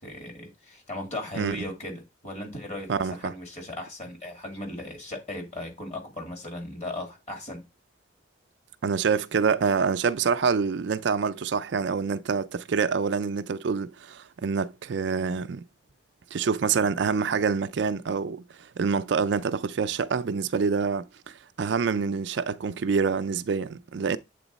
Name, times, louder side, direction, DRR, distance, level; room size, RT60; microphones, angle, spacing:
voice 1, 0.0-7.6, left 1 dB, 35° left, 2.2 m, -37 dB
voice 2, 2.9-3.3 8.8-15.6 16.3-18.4 18.8-24.2, right 5 dB, 70° right, 0.4 m, -26 dB
8.0 x 3.9 x 4.0 m
head